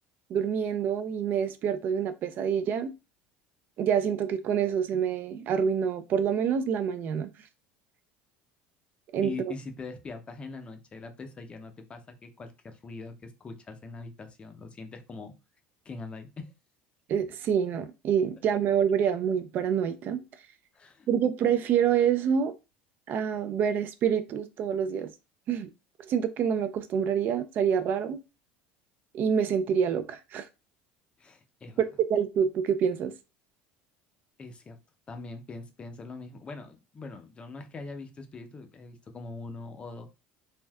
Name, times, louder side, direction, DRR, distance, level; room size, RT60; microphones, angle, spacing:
voice 1, 0.3-2.9 3.8-7.3 9.1-9.3 17.1-20.2 21.1-22.5 23.1-25.1 25.5-25.7 26.1-28.2 29.1-30.5 32.1-33.1, right 8 dB, 45° right, 0.3 m, -27 dB
voice 2, 9.2-15.4 15.9-16.5 20.7-21.1 31.2-31.8 34.4-34.8 35.1-40.1, left 3 dB, 25° left, 0.5 m, -42 dB
3.3 x 2.5 x 2.2 m
supercardioid pair, 125°, 4 cm